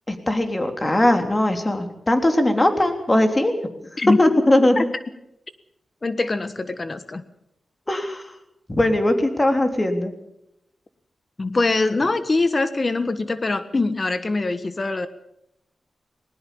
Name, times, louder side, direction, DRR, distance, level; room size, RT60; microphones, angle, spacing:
voice 1, 0.1-3.5 4.2-4.8 7.9-8.2 8.7-10.1, left 1 dB, 20° left, 5 dB, 3.5 m, -19 dB
voice 2, 6.0-7.2 11.4-15.1, left 3 dB, 35° left, 12 dB, 1.4 m, -23 dB
20.0 x 19.5 x 7.1 m, 0.79 s
cardioid pair, 80°, 0 cm